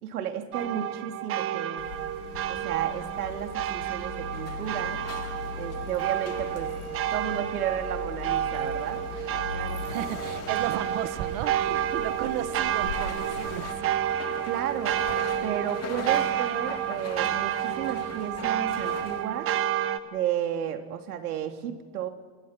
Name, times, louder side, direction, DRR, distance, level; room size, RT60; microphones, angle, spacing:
voice 1, 0.0-1.9 2.5-5.0 5.6-6.7 7.1-9.0 11.7-12.0 14.4-15.0 15.4-19.5 20.1-22.1, right 10 dB, 85° right, 6 dB, 2.8 m, -33 dB
sound 1, 0.5-20.0, right 11 dB, 30° right, 1.3 m, -30 dB
Accelerating revving vroom, 1.8-13.7, left 6 dB, 80° left, 4.3 m, -40 dB
sound 2, 4.3-19.2, left 8 dB, 35° left, 2.7 m, -44 dB
voice 2, 9.1-14.0, right 14 dB, 50° right, 13 dB, 1.5 m, -35 dB
29.5 x 25.0 x 5.9 m, 1.4 s
supercardioid pair, 130°, 44 cm